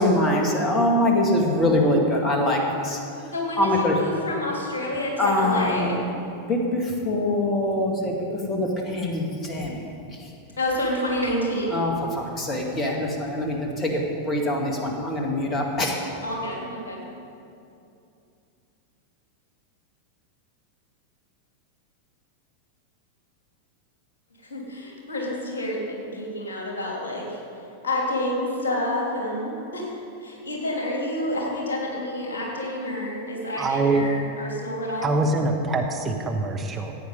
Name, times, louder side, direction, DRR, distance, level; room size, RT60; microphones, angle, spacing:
voice 1, 0.0-3.0 3.6-3.9 5.2-6.0 6.5-8.2 8.5-9.8 11.7-15.9, left 1 dB, 25° left, 0 dB, 2.0 m, -23 dB
voice 2, 3.3-6.0 10.6-11.8 16.2-17.0 24.4-27.4 27.8-35.1, left 1 dB, 65° left, -2 dB, 3.1 m, -28 dB
voice 3, 33.6-34.0 35.0-36.9, right 3 dB, 20° right, 2 dB, 1.2 m, -24 dB
15.0 x 8.9 x 5.4 m, 2.6 s
figure-of-eight pair, 90°, 0 cm